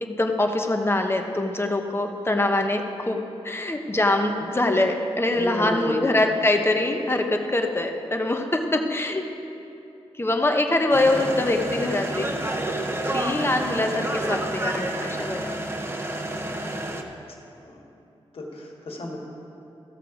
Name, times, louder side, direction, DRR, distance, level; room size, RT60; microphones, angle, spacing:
voice 1, 0.0-3.2 3.4-9.2 10.2-12.3 13.1-15.5, left 2 dB, 25° left, 4 dB, 1.0 m, -24 dB
voice 2, 5.3-6.4 13.3-13.6 17.6-17.8 18.3-19.2, left 1 dB, 65° left, -1 dB, 1.8 m, -32 dB
sound 1, 10.9-17.0, right 1 dB, 25° right, 1.0 m, -29 dB
14.5 x 6.6 x 5.0 m, 2.8 s
cardioid pair, 65°, 11 cm